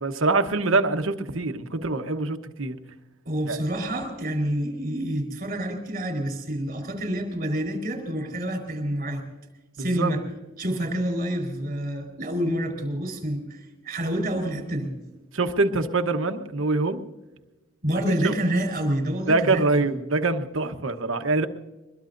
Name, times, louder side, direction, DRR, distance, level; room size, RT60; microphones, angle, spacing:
voice 1, 0.0-2.8 3.5-3.6 9.8-10.2 15.3-17.0 18.2-18.3 19.3-21.5, right 3 dB, 65° right, 1.1 m, -24 dB
voice 2, 3.2-9.2 9.8-10.2 10.6-14.9 17.8-19.9, right 1 dB, 40° right, 4.1 m, -28 dB
23.0 x 21.5 x 2.6 m
head